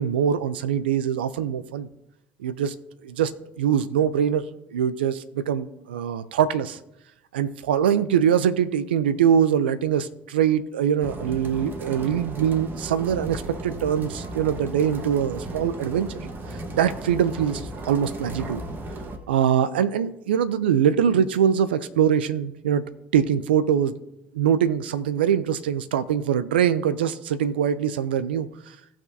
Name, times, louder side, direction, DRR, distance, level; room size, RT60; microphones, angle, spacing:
voice 1, 0.0-1.9 2.4-2.7 3.0-4.4 4.7-6.8 7.3-16.2 16.5-18.6 19.3-22.8 23.1-24.0 24.3-28.8, right 8 dB, 85° right, 13 dB, 0.5 m, -23 dB
sound 1, 11.0-19.2, right 1 dB, 40° right, 1.5 m, -35 dB
17.5 x 6.0 x 2.7 m, 0.84 s
hypercardioid pair, 60°, 5 cm